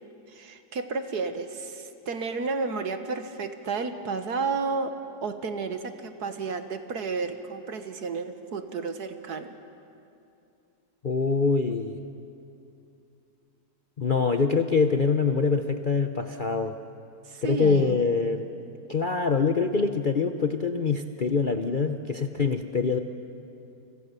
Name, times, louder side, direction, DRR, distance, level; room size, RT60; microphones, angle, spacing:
voice 1, 0.3-4.9 5.2-9.5 17.3-18.0, right 4 dB, 65° right, 8 dB, 1.9 m, -32 dB
voice 2, 11.0-12.0 14.0-16.8 17.4-18.5 18.9-23.0, left 4 dB, 45° left, 7 dB, 0.7 m, -24 dB
29.5 x 25.5 x 6.8 m, 2.6 s
omnidirectional pair, 1.8 m